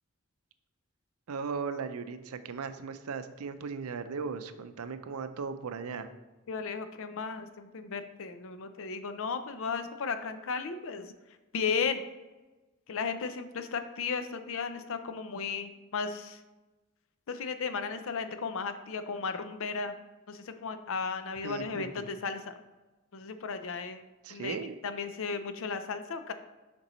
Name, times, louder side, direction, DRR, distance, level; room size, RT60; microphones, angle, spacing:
voice 1, 1.3-6.1 21.4-22.1 24.2-24.7, right 5 dB, 80° right, 10 dB, 0.5 m, -37 dB
voice 2, 6.5-11.1 11.5-12.0 12.9-16.4 17.3-20.0 20.3-22.6 23.1-24.0 24.3-24.6 24.8-26.3, left 5 dB, 65° left, 9 dB, 0.5 m, -35 dB
6.7 x 5.2 x 3.1 m, 1.1 s
head